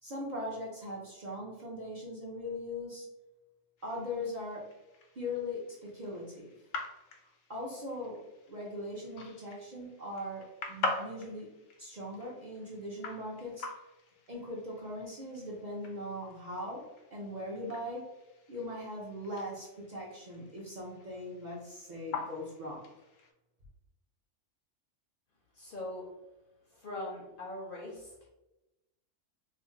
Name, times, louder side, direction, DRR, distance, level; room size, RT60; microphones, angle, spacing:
voice 1, 0.0-3.1 3.8-4.6 5.2-6.5 7.5-11.5 11.8-13.7 14.3-18.1 18.5-22.8, left 1 dB, 50° right, -4 dB, 0.5 m, -40 dB
sound 1, 3.8-23.3, left 3 dB, 85° left, 0.9 m, -45 dB
voice 2, 25.5-26.1 26.7-28.1, left 1 dB, 60° left, -2 dB, 0.6 m, -41 dB
2.5 x 2.0 x 3.6 m, 0.97 s
omnidirectional pair, 1.3 m